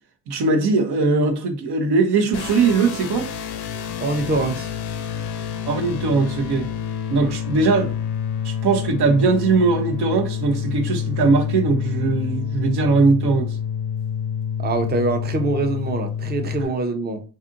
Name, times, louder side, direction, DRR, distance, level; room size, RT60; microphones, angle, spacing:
voice 1, 0.3-3.3 5.7-6.7 7.1-7.9 8.4-13.6, right 4 dB, 65° right, 0.6 m, -20 dB
sound 1, 2.3-16.7, left 8 dB, 65° left, 0.5 m, -28 dB
voice 2, 4.0-4.7 14.6-17.2, right 2 dB, 25° right, 0.6 m, -24 dB
2.6 x 2.5 x 2.5 m
supercardioid pair, 45°, 43 cm